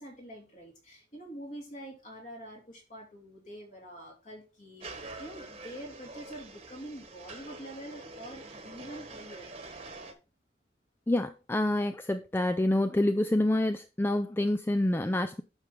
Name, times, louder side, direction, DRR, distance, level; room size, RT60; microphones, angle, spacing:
voice 1, 0.0-9.8, right 1 dB, 40° left, 2.9 m, -46 dB
sound 1, 4.8-10.1, right 2 dB, 30° right, 1.2 m, -45 dB
voice 2, 11.1-15.4, left 1 dB, 10° left, 0.3 m, -27 dB
8.8 x 6.0 x 3.7 m
head